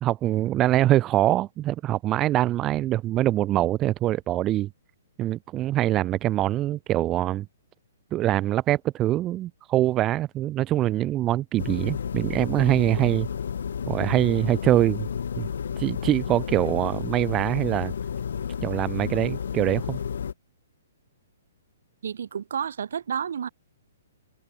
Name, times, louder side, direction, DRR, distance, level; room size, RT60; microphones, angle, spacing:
voice 1, 0.0-4.7 5.2-7.5 8.1-13.3 13.9-15.1 15.4-15.5 15.8-17.9 18.6-20.0, right 14 dB, 15° right, 0.6 m, -24 dB
sound 1, 11.6-20.3, left 7 dB, 70° left, 5.7 m, -31 dB
voice 2, 22.0-23.5, right 8 dB, 65° right, 3.3 m, -30 dB
hypercardioid pair, 175°, 0 cm